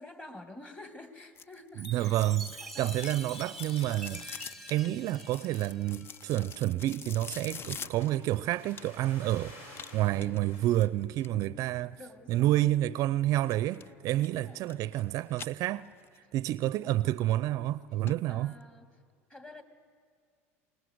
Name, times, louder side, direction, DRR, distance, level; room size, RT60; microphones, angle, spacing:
voice 1, 0.0-2.3 2.6-2.9 11.8-12.6 14.1-14.6 16.8-17.0 18.3-18.9 19.3-19.6, left 2 dB, 20° left, 2.3 m, -49 dB
sound 1, 1.4-9.2 9.7-11.5 13.4-13.9 14.2-15.0 15.3-16.2 16.6-16.7 17.3-17.4 17.7-17.8 18.1-18.2 18.5-18.6, left 7 dB, 35° left, 0.5 m, -46 dB
Chime, 1.8-6.4, right 1 dB, ahead, 1.0 m, -46 dB
voice 2, 1.8-4.2 4.7-12.0 12.3-15.9 16.3-18.5, right 14 dB, 50° right, 0.5 m, -29 dB
sound 2, 7.5-10.8 11.3-11.9 12.4-12.5 12.7-13.0 13.5-13.8 14.3-15.0 15.3-15.4, left 2 dB, 70° left, 5.5 m, -52 dB
25.0 x 20.5 x 8.0 m
hypercardioid pair, 90°, 7 cm